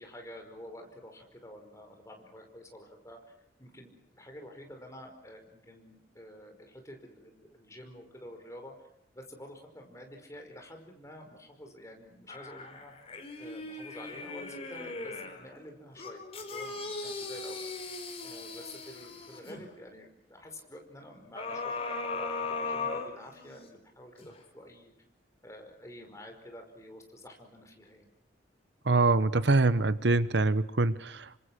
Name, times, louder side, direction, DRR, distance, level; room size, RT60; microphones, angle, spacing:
voice 1, 0.0-3.2 3.6-8.7 9.1-13.0 13.4-17.6 18.2-24.9 25.4-28.1, left 1 dB, 15° left, 3 dB, 5.2 m, -49 dB
sound 1, 12.3-15.4 16.0-19.6 21.3-23.7 24.2-24.3, left 3 dB, 30° left, 4.2 m, -38 dB
voice 2, 28.8-31.4, right 3 dB, 65° right, 15 dB, 1.0 m, -25 dB
28.0 x 25.5 x 6.3 m, 0.78 s
head